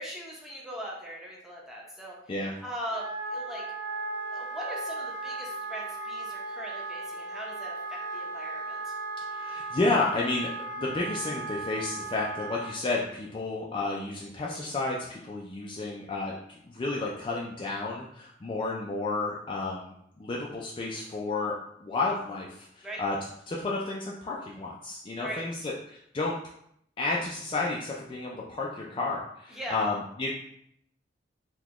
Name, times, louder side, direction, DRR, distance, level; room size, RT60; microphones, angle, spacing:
voice 1, 0.0-2.3 2.6-3.6 4.3-8.9 22.8-23.0 25.2-25.7 29.5-29.9, equal, 5° right, -4 dB, 0.7 m, -40 dB
Wind instrument woodwind instrument, 2.8-12.7, right 2 dB, 65° right, 1.4 m, -36 dB
voice 2, 9.3-16.3 16.7-23.2 23.5-26.4 27.0-30.3, left 3 dB, 25° left, -3 dB, 0.3 m, -31 dB
3.9 x 2.2 x 2.9 m, 0.72 s
head